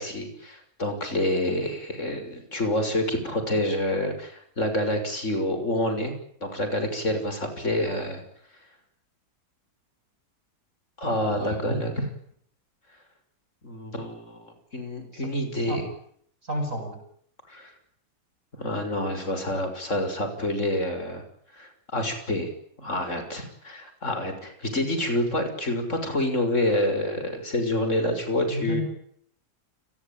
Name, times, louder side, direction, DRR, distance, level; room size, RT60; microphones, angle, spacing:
voice 1, 0.0-6.1 6.4-8.2 11.0-12.1 13.6-14.5 14.7-15.9 17.5-17.7 18.5-21.2 21.5-22.5 22.8-28.8, left 1 dB, 45° left, 7 dB, 6.7 m, -27 dB
voice 2, 11.0-11.7 15.1-15.3 15.7-15.8 16.4-17.0 28.5-28.8, equal, 45° right, 6 dB, 8.4 m, -32 dB
29.5 x 19.5 x 9.1 m, 0.67 s
omnidirectional pair, 1.8 m